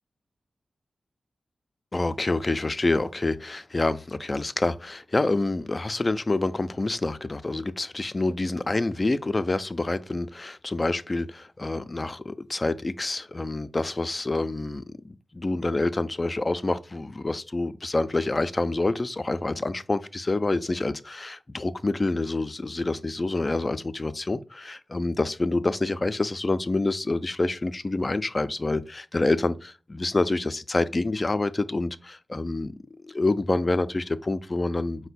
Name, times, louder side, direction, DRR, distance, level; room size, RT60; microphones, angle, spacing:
voice 1, 1.9-32.7 33.0-35.1, left 2 dB, 35° left, 0.3 m, -27 dB
4.4 x 2.1 x 4.1 m
cardioid pair, 50°, 0 cm